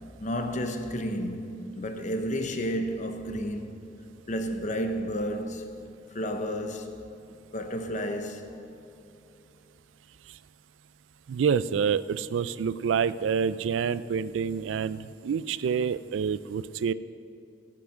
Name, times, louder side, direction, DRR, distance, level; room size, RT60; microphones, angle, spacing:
voice 1, 0.2-3.8 4.3-5.7 6.1-6.9 7.5-8.5, equal, 40° left, 0.9 m, -31 dB
voice 2, 11.3-16.9, right 6 dB, 85° right, 0.3 m, -27 dB
16.5 x 6.1 x 6.3 m
head